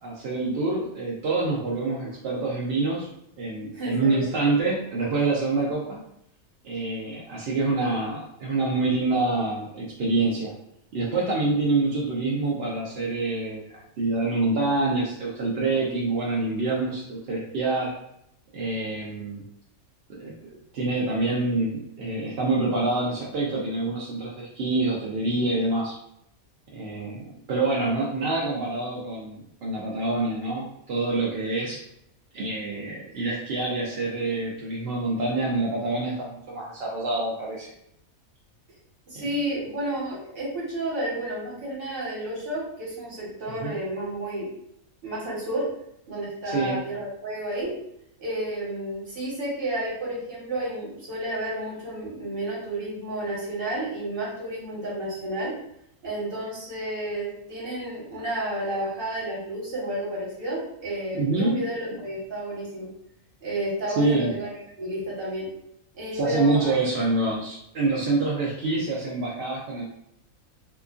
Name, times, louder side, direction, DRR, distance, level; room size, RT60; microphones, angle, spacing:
voice 1, 0.0-3.1 3.4-6.0 6.6-10.5 10.9-17.9 18.5-19.4 20.1-25.9 26.7-31.8 32.3-37.7 39.2-39.3 43.5-43.8 46.4-46.8 61.1-61.6 63.9-64.3 66.1-69.8, right 3 dB, 60° right, -5 dB, 0.6 m, -26 dB
voice 2, 3.7-4.3 39.1-44.5 45.0-45.6 46.1-47.7 48.2-55.5 56.0-62.9 63.4-64.5 64.8-65.5 65.9-66.8, right 1 dB, 40° right, -6 dB, 1.3 m, -31 dB
2.9 x 2.4 x 2.4 m, 0.77 s
omnidirectional pair, 1.5 m